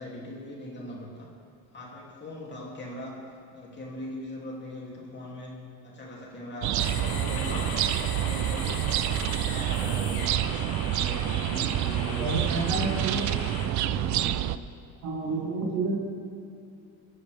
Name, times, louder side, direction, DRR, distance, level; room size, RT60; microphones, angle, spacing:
voice 1, 0.0-1.3 1.7-3.2 3.5-5.6 5.8-7.7 8.1-8.8 9.1-13.3 13.6-14.5 15.2-15.5, left 1 dB, 25° left, -3 dB, 3.0 m, -40 dB
sound 1, 6.6-14.6, right 13 dB, 45° right, 0.5 m, -28 dB
sound 2, 6.8-13.7, left 3 dB, 60° left, 2.9 m, -38 dB
voice 2, 12.2-13.3 15.0-16.0, right 3 dB, 70° right, -3 dB, 3.6 m, -29 dB
21.5 x 10.5 x 3.6 m, 2.6 s
cardioid pair, 130°, 40 cm